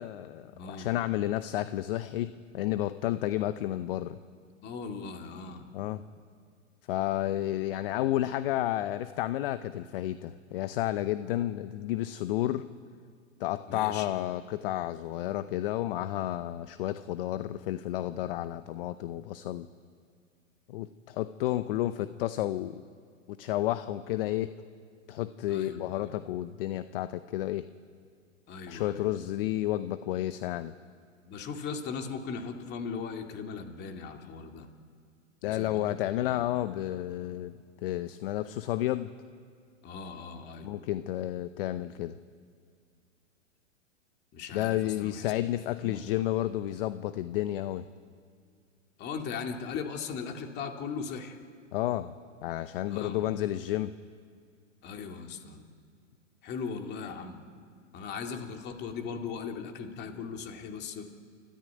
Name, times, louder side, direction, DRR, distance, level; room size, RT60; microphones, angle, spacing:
voice 1, 0.0-4.2 5.7-6.0 6.9-12.7 13.4-19.7 20.7-22.8 23.3-24.5 25.1-27.7 28.7-30.7 35.4-37.5 37.8-39.1 40.6-42.2 44.5-47.9 51.7-52.1 52.4-53.9, left 14 dB, 45° left, 12 dB, 0.8 m, -31 dB
voice 2, 0.5-1.0 4.6-5.7 13.7-14.1 25.5-26.1 28.5-29.1 31.3-34.7 35.4-36.4 39.8-40.8 44.3-45.3 45.8-46.2 49.0-51.4 52.9-53.3 54.8-55.7 56.4-57.4 57.9-61.1, left 5 dB, 25° left, 4 dB, 2.3 m, -39 dB
29.5 x 14.5 x 9.3 m, 2.2 s
hypercardioid pair, 135°, 39 cm